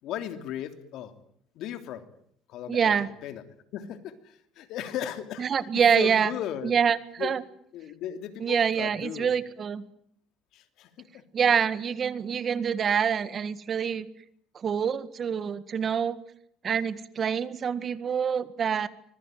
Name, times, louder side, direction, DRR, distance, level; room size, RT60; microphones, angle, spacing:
voice 1, 0.0-1.1 1.5-2.0 2.5-3.4 3.7-5.5 5.7-6.7 7.2-7.3 7.7-9.3 10.5-11.2, left 10 dB, 75° left, 9 dB, 3.1 m, -36 dB
voice 2, 2.7-3.1 5.4-6.3 6.6-7.4 8.4-9.8 11.3-14.1 14.6-16.2 16.6-18.9, right 7 dB, 40° right, 14 dB, 1.8 m, -26 dB
25.0 x 21.5 x 9.3 m, 0.67 s
cardioid pair, 110°, 0 cm